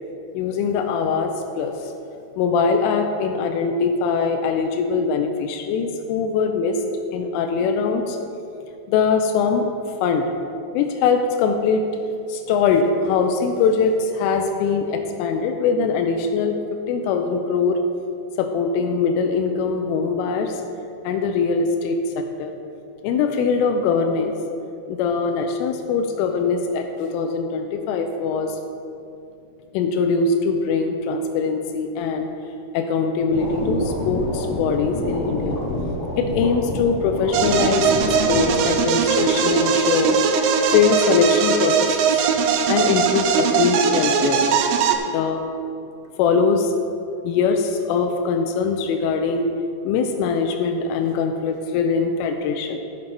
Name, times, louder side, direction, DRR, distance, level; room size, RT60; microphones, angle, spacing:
voice 1, 0.3-1.9 2.4-6.8 7.1-8.2 8.9-9.7 10.0-10.3 10.7-11.8 12.3-16.6 16.9-17.8 18.4-20.6 21.0-22.5 23.0-24.3 24.9-28.6 29.7-32.3 32.7-35.6 36.2-42.2 42.7-44.5 45.1-45.4 46.2-46.7 47.2-49.5 49.8-52.8, left 5 dB, 85° left, 4 dB, 3.1 m, -22 dB
sound 1, 33.3-38.8, left 1 dB, 45° left, 2.9 m, -28 dB
sound 2, 37.3-45.0, right 6 dB, 90° right, 3.4 m, -20 dB
13.5 x 7.0 x 3.9 m, 2.6 s
omnidirectional pair, 5.7 m